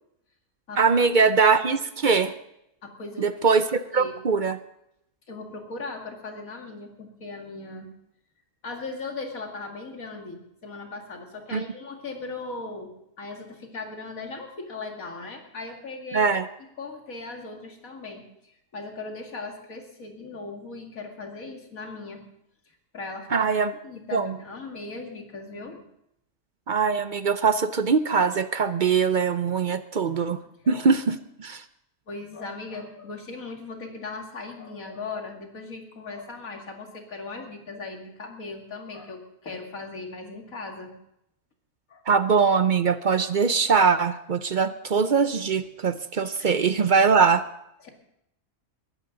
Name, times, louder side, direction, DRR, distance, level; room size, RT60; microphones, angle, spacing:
voice 1, 0.8-2.3 3.2-4.6 11.5-11.6 16.1-16.4 23.3-23.7 24.1-24.3 26.7-30.4 30.7-31.6 42.1-47.4, right 5 dB, 50° right, 11 dB, 0.6 m, -22 dB
voice 2, 2.8-3.3 3.7-4.1 5.3-7.9 8.6-16.3 16.8-22.2 22.9-23.6 23.8-25.8 30.0-30.1 30.6-30.9 32.1-40.9 41.9-42.0 46.4-46.9 47.8-47.9, left 3 dB, 80° left, 2 dB, 2.7 m, -38 dB
21.0 x 14.0 x 3.9 m, 0.79 s
omnidirectional pair, 1.4 m